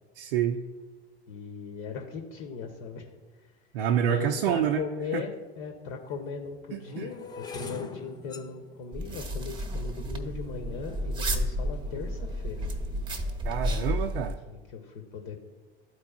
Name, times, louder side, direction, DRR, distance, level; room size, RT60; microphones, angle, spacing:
voice 1, 0.1-0.6 3.7-4.8 5.1-5.2 6.7-7.1 13.4-14.4, right 9 dB, 60° right, 4 dB, 0.5 m, -27 dB
voice 2, 1.3-3.2 4.0-12.7 14.5-15.4, left 5 dB, 50° left, 3 dB, 1.1 m, -38 dB
sound 1, 5.2-5.3 6.0-12.2 12.8-13.2 13.5-13.8, left 5 dB, 15° left, 0.4 m, -45 dB
sound 2, 8.9-14.3, equal, 15° right, 1.0 m, -32 dB
13.0 x 4.6 x 2.4 m, 1.3 s
figure-of-eight pair, 85°, 31 cm